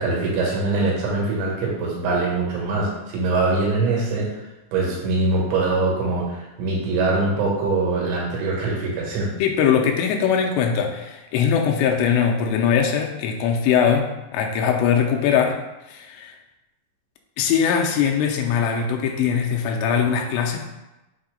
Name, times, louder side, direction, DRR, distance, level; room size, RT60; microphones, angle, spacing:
voice 1, 0.0-4.3 4.7-9.3, right 3 dB, 80° right, -3 dB, 3.6 m, -23 dB
voice 2, 9.4-15.6 15.9-16.3 17.4-20.6, left 7 dB, 85° left, 2 dB, 2.8 m, -21 dB
7.3 x 2.7 x 5.1 m, 1.0 s
omnidirectional pair, 5.2 m